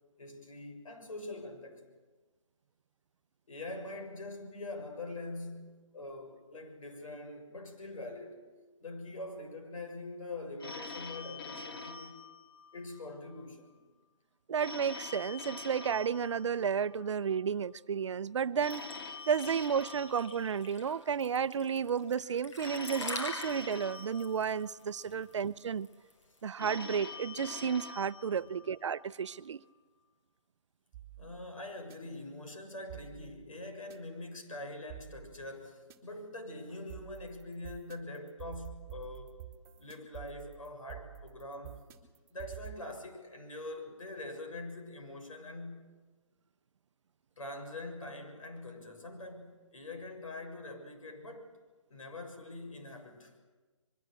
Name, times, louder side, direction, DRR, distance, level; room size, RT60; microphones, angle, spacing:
voice 1, 0.2-1.9 3.5-8.4 8.8-12.2 12.7-13.9 25.1-25.3 28.3-28.5 31.2-39.3 39.8-41.8 42.3-45.8 47.4-51.5 51.9-53.3, left 2 dB, 85° left, 6.8 m, -44 dB
Telephone, 10.6-13.1 14.6-17.1 18.6-21.1 22.6-25.1 26.6-29.1, left 4 dB, 45° left, 2.6 m, -45 dB
voice 2, 14.5-18.8 19.3-25.9 26.4-29.6, right 7 dB, 60° right, 0.7 m, -32 dB
sound 1, 18.7-26.4, left 1 dB, 65° left, 7.4 m, -43 dB
sound 2, 30.9-32.0 32.9-34.0 34.9-36.0 36.9-42.8, right 12 dB, 15° right, 2.1 m, -48 dB
24.0 x 22.5 x 8.4 m
hypercardioid pair, 165°, 17 cm